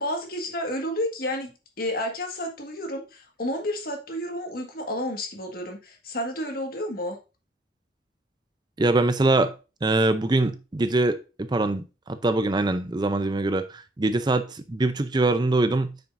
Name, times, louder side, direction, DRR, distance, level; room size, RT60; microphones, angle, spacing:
voice 1, 0.0-7.2, left 1 dB, 55° left, 1.7 m, -31 dB
voice 2, 8.8-9.5 9.8-11.8 12.2-16.0, right 2 dB, 25° right, 0.5 m, -23 dB
8.6 x 5.9 x 2.6 m
head